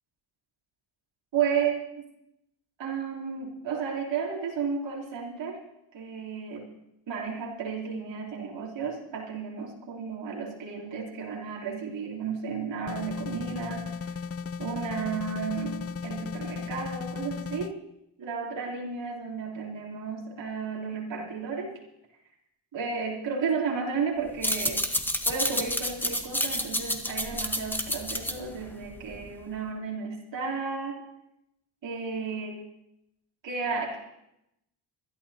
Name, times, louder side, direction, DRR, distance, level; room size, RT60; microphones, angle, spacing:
voice 1, 1.3-2.0 2.8-5.6 5.9-6.7 7.1-14.1 14.6-17.8 18.2-21.7 22.7-24.8 25.3-31.0 31.8-32.6 33.4-34.0, right 5 dB, 65° right, -4 dB, 3.5 m, -33 dB
sound 1, 12.9-17.7, left 5 dB, 30° left, 0.5 m, -36 dB
sound 2, 24.3-29.5, equal, 5° left, 1.3 m, -30 dB
25.0 x 12.0 x 2.9 m, 0.85 s
cardioid pair, 100°, 47 cm